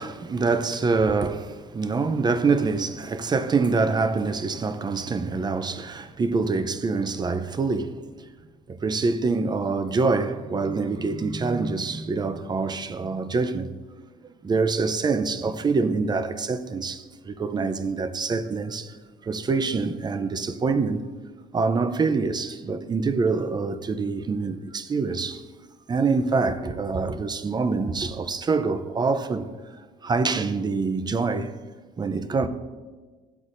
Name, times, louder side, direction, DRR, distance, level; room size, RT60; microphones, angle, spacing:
voice 1, 0.0-8.0 8.7-13.7 14.2-19.0 19.2-21.0 21.5-25.4 25.9-29.5 30.0-31.5 32.0-32.5, right 4 dB, 25° right, 0.6 m, -25 dB
15.0 x 8.0 x 2.6 m
cardioid pair, 110°, 17 cm